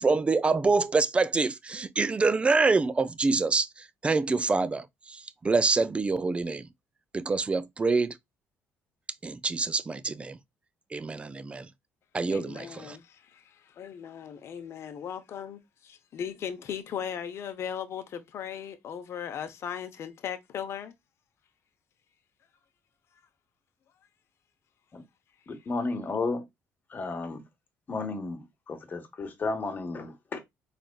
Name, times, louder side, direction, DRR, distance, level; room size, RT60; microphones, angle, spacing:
voice 1, 0.0-6.7 7.1-8.2 9.2-10.4 10.9-11.7 12.1-13.0, right 3 dB, 20° right, 0.4 m, -26 dB
voice 2, 12.3-20.9, left 8 dB, 60° left, 0.7 m, -38 dB
voice 3, 25.5-26.4 26.9-27.4 27.9-30.4, left 3 dB, 35° left, 1.2 m, -33 dB
4.0 x 3.4 x 2.2 m
cardioid pair, 100°, 5 cm